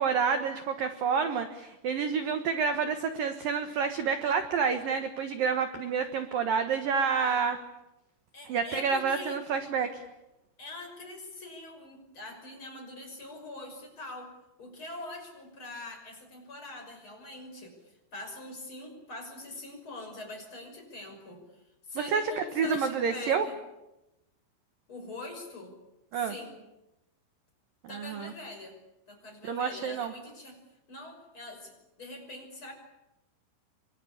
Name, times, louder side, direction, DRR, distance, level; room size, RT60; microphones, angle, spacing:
voice 1, 0.0-7.6 8.5-10.0 22.0-23.5 26.1-26.3 27.9-28.3 29.5-30.1, right 6 dB, 65° right, 8 dB, 2.4 m, -29 dB
voice 2, 8.3-9.4 10.6-14.3 14.6-21.4 21.9-23.6 24.9-25.7 26.1-26.6 27.9-28.8 29.1-30.6 30.9-31.7 32.0-32.7, left 2 dB, 25° left, 4 dB, 6.4 m, -43 dB
27.0 x 25.0 x 8.7 m, 0.94 s
omnidirectional pair, 5.8 m